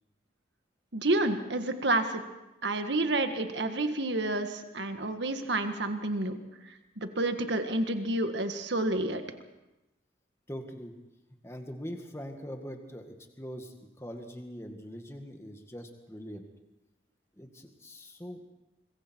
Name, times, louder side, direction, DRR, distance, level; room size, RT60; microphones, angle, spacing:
voice 1, 0.9-2.2 2.6-6.4 7.0-9.2, right 2 dB, 70° right, 7 dB, 1.7 m, -29 dB
voice 2, 10.5-10.9 11.4-16.5 17.4-18.4, equal, 15° left, 4 dB, 1.9 m, -42 dB
25.5 x 22.5 x 4.6 m, 0.98 s
head